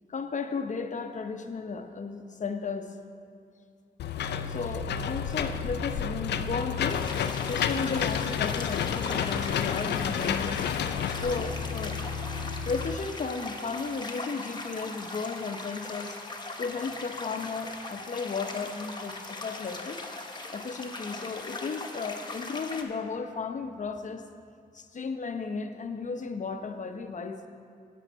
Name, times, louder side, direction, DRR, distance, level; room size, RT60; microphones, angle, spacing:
voice 1, 0.1-3.0 4.5-7.1 7.5-10.6 11.1-12.0 12.7-16.1 16.6-20.0 20.5-24.3 24.7-27.5, left 4 dB, 45° left, 7 dB, 0.8 m, -34 dB
Engine / Mechanisms, 4.0-13.0, left 8 dB, 80° left, 0.4 m, -30 dB
sound 1, 6.9-22.8, left 2 dB, 25° left, 1.1 m, -40 dB
10.0 x 8.4 x 4.6 m, 2.3 s
cardioid pair, 60°, 17 cm